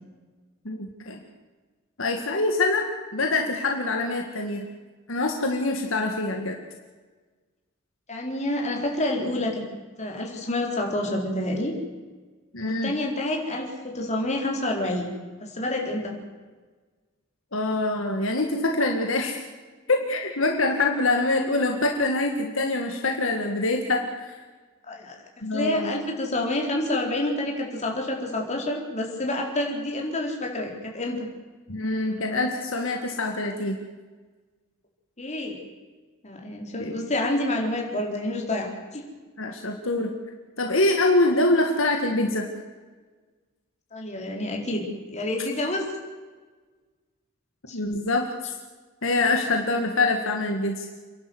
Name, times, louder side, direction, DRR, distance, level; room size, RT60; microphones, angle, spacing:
voice 1, 0.7-1.2 2.0-4.6 5.1-6.6 12.5-12.9 17.5-19.4 19.9-24.4 25.4-25.9 31.7-33.8 36.8-37.0 39.4-40.1 40.6-42.4 47.7-48.6 49.0-50.9, left 2 dB, 70° left, 3 dB, 2.0 m, -25 dB
voice 2, 8.1-9.6 10.0-11.7 12.6-15.1 15.4-16.1 24.9-31.3 35.2-35.6 36.2-39.0 43.9-45.8 47.7-47.8, left 1 dB, 35° left, 0 dB, 4.1 m, -28 dB
28.5 x 11.5 x 8.0 m, 1.4 s
head